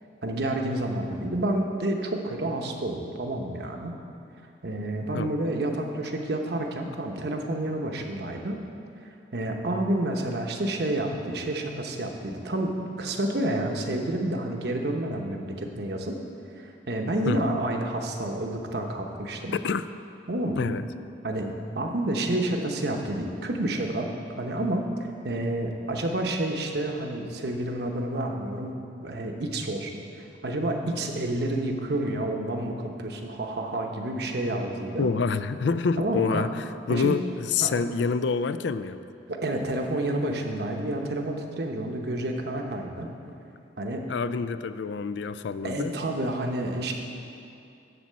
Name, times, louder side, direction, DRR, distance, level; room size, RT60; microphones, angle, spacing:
voice 1, 0.2-3.9 4.6-8.6 9.3-16.2 16.6-19.6 20.3-20.6 21.2-24.1 24.4-28.8 29.0-35.1 36.0-36.5 36.9-37.2 37.6-37.7 39.3-43.1 43.8-44.0 45.6-46.9, right 1 dB, 65° right, 2 dB, 0.9 m, -29 dB
voice 2, 20.6-20.9 35.0-39.0 44.1-45.9, left 5 dB, 75° left, 12 dB, 0.4 m, -27 dB
12.0 x 4.2 x 7.4 m, 2.6 s
head